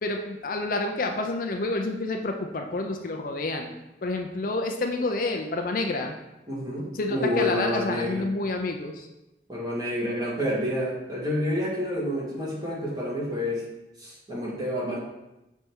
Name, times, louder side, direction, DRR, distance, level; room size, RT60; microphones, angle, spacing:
voice 1, 0.0-3.7 4.0-6.1 6.9-9.1, left 2 dB, 50° left, 4 dB, 0.5 m, -29 dB
voice 2, 6.5-8.2 9.5-13.6 14.0-15.0, left 1 dB, 20° right, -6 dB, 1.6 m, -29 dB
6.3 x 3.4 x 4.5 m, 0.96 s
head